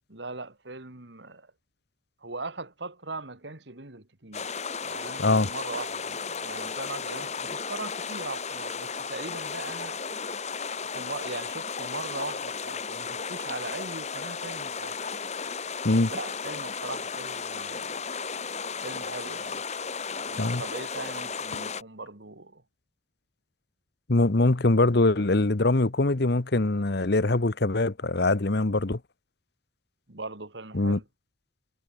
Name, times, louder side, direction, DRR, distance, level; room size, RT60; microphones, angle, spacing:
voice 1, 0.1-1.5 2.2-4.5 4.8-10.0 10.9-15.0 16.1-18.1 18.8-19.6 20.3-22.6 30.1-31.0, right 3 dB, 65° right, 2.3 m, -40 dB
sound 1, 4.3-21.8, left 5 dB, 35° left, 1.8 m, -34 dB
voice 2, 5.2-5.5 15.8-16.1 20.4-20.6 24.1-29.0 30.7-31.0, left 2 dB, 55° left, 1.1 m, -23 dB
head